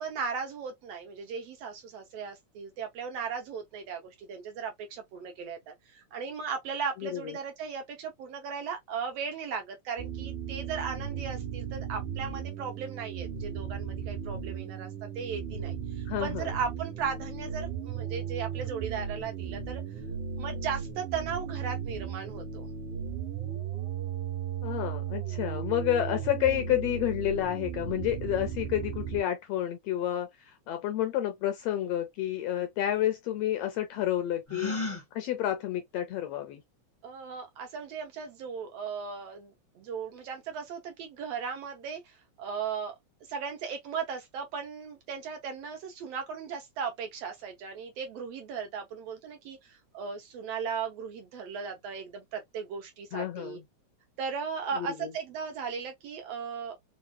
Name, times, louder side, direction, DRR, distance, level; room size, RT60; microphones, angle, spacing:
voice 1, 0.0-14.9 15.1-19.8 20.4-22.7 37.0-53.6 54.2-56.8, right 6 dB, 75° right, 1.6 m, -37 dB
voice 2, 7.0-7.4 16.1-16.5 24.6-34.7 35.1-36.6 53.1-53.6 54.8-55.1, left 12 dB, 80° left, 1.5 m, -30 dB
sound 1, 10.0-29.2, right 8 dB, 90° right, 2.4 m, -36 dB
Gasp, 34.5-35.0, left 3 dB, 20° left, 0.7 m, -32 dB
5.1 x 2.4 x 2.2 m
omnidirectional pair, 3.3 m